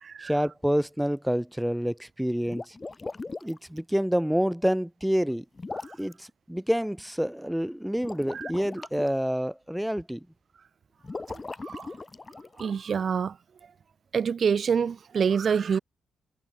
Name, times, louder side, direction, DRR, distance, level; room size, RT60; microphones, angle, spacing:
voice 1, 0.2-2.7 3.4-5.4 6.0-10.2, equal, ahead, 1.3 m, -28 dB
sound 1, 2.4-3.6 5.5-6.1 7.9-9.1 11.0-12.7, left 3 dB, 20° left, 1.5 m, -38 dB
voice 2, 12.6-13.3 14.1-15.8, right 6 dB, 45° right, 0.6 m, -26 dB
cardioid pair, 130°, 0 cm